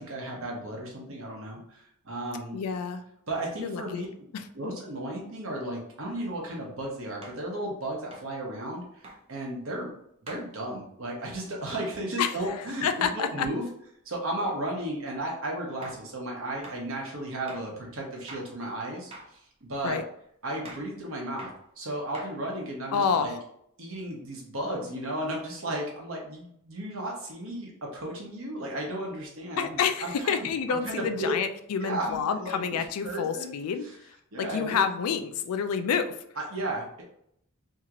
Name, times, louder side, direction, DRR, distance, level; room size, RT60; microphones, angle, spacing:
voice 1, 0.0-2.6 3.3-4.1 4.5-9.9 10.2-13.6 14.0-19.1 19.6-20.0 20.4-21.5 21.8-23.3 23.8-31.3 31.8-32.8 33.0-33.5 34.3-34.8 36.4-37.0, right 1 dB, 65° right, -1 dB, 0.9 m, -34 dB
voice 2, 2.5-3.0 3.6-4.1 4.3-4.7 12.2-13.5 19.8-20.0 22.9-23.3 29.6-36.2, left 6 dB, 85° left, 9 dB, 0.4 m, -29 dB
sound 1, 6.1-6.3 7.2-7.5 8.1-8.3 9.0-9.2 10.3-10.5 11.8-12.0 15.1-15.2 15.8-16.1 16.6-16.8 17.5-17.7 18.3-18.5 19.1-19.4 19.9-20.1 20.6-20.9 21.4-21.6 22.1-22.6, right 2 dB, 25° right, 0.5 m, -45 dB
2.8 x 2.4 x 2.9 m, 0.71 s
head